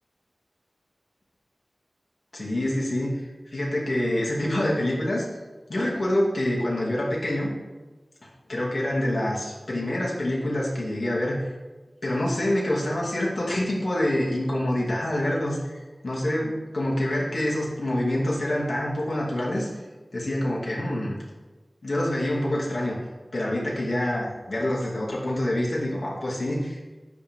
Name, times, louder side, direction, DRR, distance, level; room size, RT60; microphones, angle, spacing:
voice 1, 2.3-5.2 5.7-7.5 8.2-11.5 12.0-19.7 20.1-21.2 21.8-23.0 23.3-26.8, left 1 dB, 65° left, -5 dB, 2.8 m, -26 dB
9.6 x 3.9 x 7.1 m, 1.2 s
wide cardioid pair, 60°, 0 cm